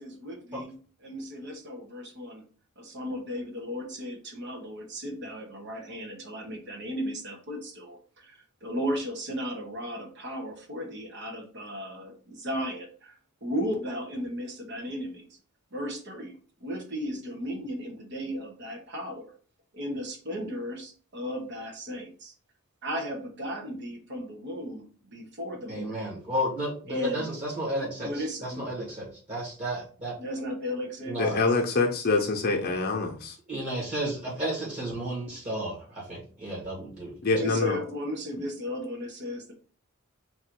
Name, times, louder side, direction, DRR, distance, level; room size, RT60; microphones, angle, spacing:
voice 1, 0.0-2.4 2.8-15.4 15.7-16.3 16.6-19.3 19.7-22.3 22.8-24.9 25.1-26.1 26.9-27.3 28.0-28.7 30.2-31.2 37.4-39.5, equal, 55° right, 2 dB, 0.9 m, -35 dB
voice 2, 25.7-30.2 31.1-31.4 33.5-37.1, right 1 dB, 35° right, -5 dB, 1.5 m, -33 dB
voice 3, 31.2-33.4 37.2-37.8, left 3 dB, 45° left, 1 dB, 0.8 m, -25 dB
4.0 x 2.5 x 4.5 m, 0.41 s
head